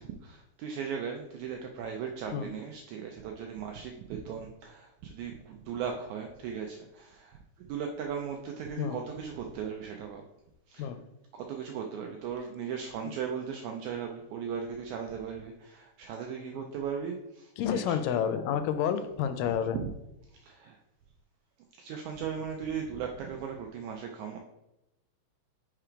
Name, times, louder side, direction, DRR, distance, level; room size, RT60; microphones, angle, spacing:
voice 1, 0.0-10.2 10.7-10.9 11.3-18.0 19.5-19.9 20.3-20.8 21.8-24.4, right 7 dB, 85° right, 3 dB, 1.7 m, -37 dB
voice 2, 17.6-19.8, left 8 dB, 85° left, 10 dB, 2.2 m, -29 dB
4.7 x 4.5 x 4.9 m, 0.90 s
omnidirectional pair, 3.9 m